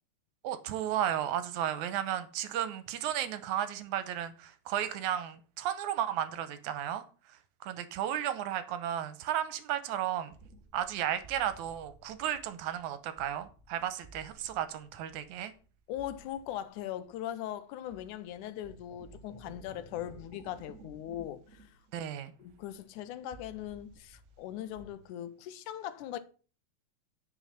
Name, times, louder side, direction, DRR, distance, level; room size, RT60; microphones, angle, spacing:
voice 1, 0.4-10.3 10.7-15.5 21.9-22.3, right 11 dB, 80° right, 2.2 m, -34 dB
sound 1, 10.3-17.6 17.8-24.9, right 2 dB, 50° right, 0.9 m, -56 dB
voice 2, 15.9-21.7 22.4-26.2, left 11 dB, 80° left, 2.2 m, -40 dB
10.0 x 5.7 x 5.6 m
omnidirectional pair, 3.5 m